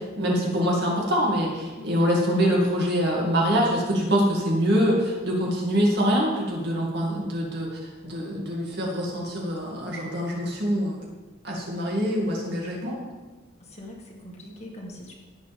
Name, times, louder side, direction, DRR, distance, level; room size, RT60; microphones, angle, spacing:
voice 1, 0.0-7.7 8.0-11.0 11.4-13.0, equal, 60° right, -3 dB, 2.3 m, -24 dB
voice 2, 1.8-2.1 13.6-15.1, left 1 dB, 35° left, -1 dB, 2.0 m, -42 dB
16.5 x 7.6 x 3.6 m, 1.3 s
head